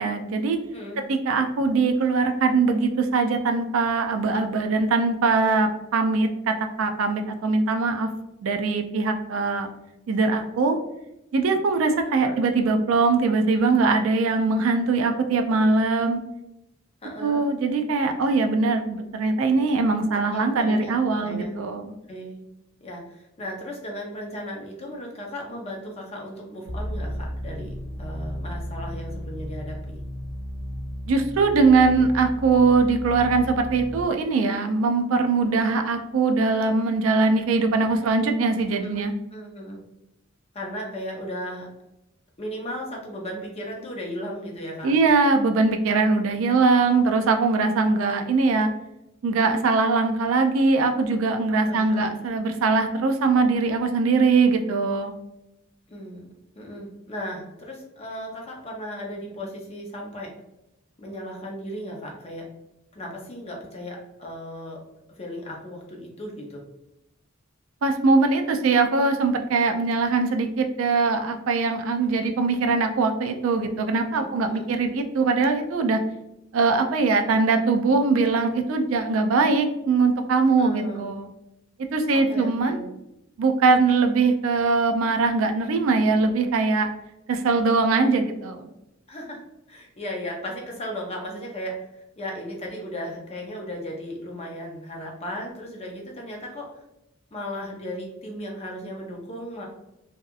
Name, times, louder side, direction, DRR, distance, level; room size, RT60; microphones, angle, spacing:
voice 1, 0.0-0.6 1.1-8.1 8.4-9.7 10.1-10.8 11.3-16.2 17.2-21.9 31.1-39.1 44.8-48.7 49.2-55.1 67.8-76.0 76.5-81.3 81.9-82.8 83.4-86.9 87.3-88.7, right 4 dB, 80° right, 6 dB, 0.4 m, -21 dB
voice 2, 0.7-1.0 12.1-12.4 17.0-17.5 20.1-20.9 21.2-21.5 22.1-22.4 22.8-30.0 38.8-39.8 40.5-41.7 42.4-45.0 51.6-52.1 55.9-56.3 56.6-60.3 61.0-62.5 62.9-64.8 65.2-66.6 74.1-74.7 80.6-81.1 82.1-82.9 89.1-89.4 89.7-91.9 92.2-96.7 97.3-99.7, equal, 30° left, -1 dB, 0.6 m, -36 dB
sound 1, 26.7-34.0, equal, 65° right, 0.9 m, -34 dB
2.7 x 2.3 x 2.3 m, 0.87 s
head